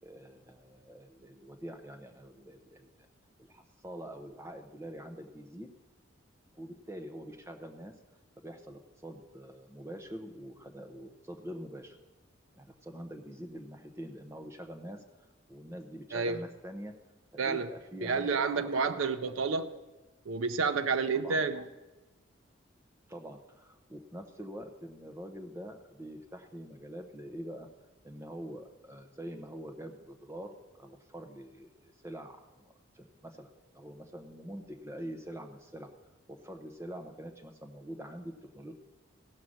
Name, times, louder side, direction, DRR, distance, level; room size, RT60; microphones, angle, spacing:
voice 1, 0.0-3.0 3.5-5.7 6.5-7.9 8.4-12.0 12.5-15.0 15.5-16.9 17.3-18.7 19.3-19.4 21.1-21.4 23.1-27.7 28.0-35.9 36.3-38.7, equal, 15° right, 0.8 m, -45 dB
voice 2, 16.1-16.4 17.4-17.7 18.0-19.7 20.3-21.6, right 4 dB, 80° right, 0.5 m, -30 dB
16.5 x 5.7 x 6.3 m
head